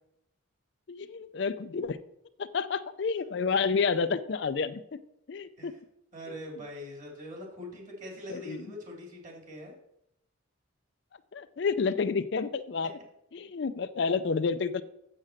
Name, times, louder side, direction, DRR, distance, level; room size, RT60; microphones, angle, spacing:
voice 1, 0.9-2.0 2.4-5.0 5.3-5.7 8.3-8.7 11.3-12.9 13.3-14.8, left 5 dB, 55° left, 13 dB, 0.4 m, -30 dB
voice 2, 6.1-9.7, left 1 dB, 40° right, 0 dB, 2.9 m, -43 dB
7.5 x 7.4 x 6.4 m, 0.81 s
head